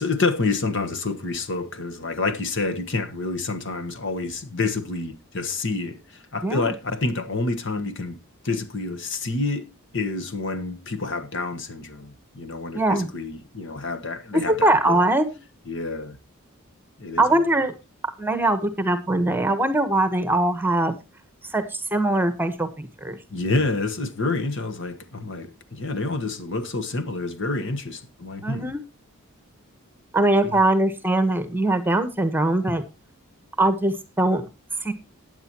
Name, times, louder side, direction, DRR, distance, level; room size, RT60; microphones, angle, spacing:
voice 1, 0.0-8.2 8.4-15.0 15.7-16.2 17.0-17.4 23.3-28.7 30.4-30.5, left 3 dB, 55° left, 1.4 m, -28 dB
voice 2, 6.4-6.7 12.7-13.1 14.5-15.3 17.2-17.7 18.2-21.0 21.5-23.2 28.4-28.8 30.1-32.8 33.6-34.5 34.8-34.9, right 2 dB, 10° right, 1.2 m, -21 dB
15.5 x 9.5 x 3.0 m
head